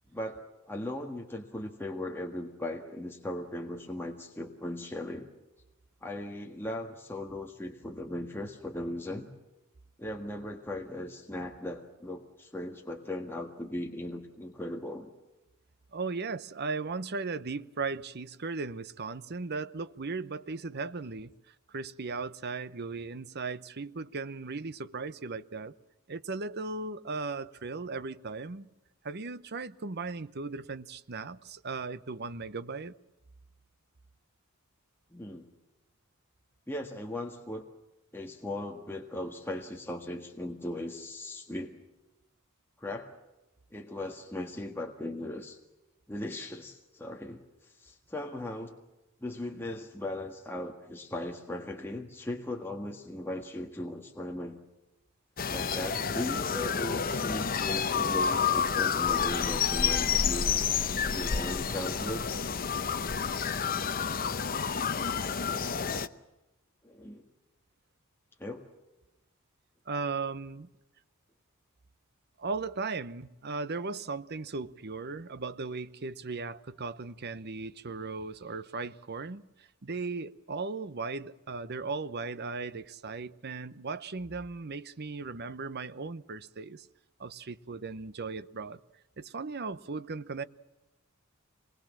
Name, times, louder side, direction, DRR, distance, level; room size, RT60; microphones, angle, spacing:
voice 1, 0.1-5.3 6.0-9.3 10.0-15.1 35.1-35.5 36.7-37.6 38.1-41.7 42.8-43.1 43.7-45.6 46.1-48.8 49.2-54.6 55.5-60.5 61.0-62.2 66.8-67.3 68.4-68.7, left 1 dB, 10° left, 1.6 m, -38 dB
voice 2, 15.9-25.7 26.1-28.7 29.0-32.9 69.9-70.7 72.4-86.9 87.2-88.8 89.2-90.4, right 4 dB, 50° right, 0.8 m, -37 dB
sound 1, 55.4-66.1, left 6 dB, 45° left, 0.9 m, -29 dB
26.0 x 21.0 x 7.4 m
head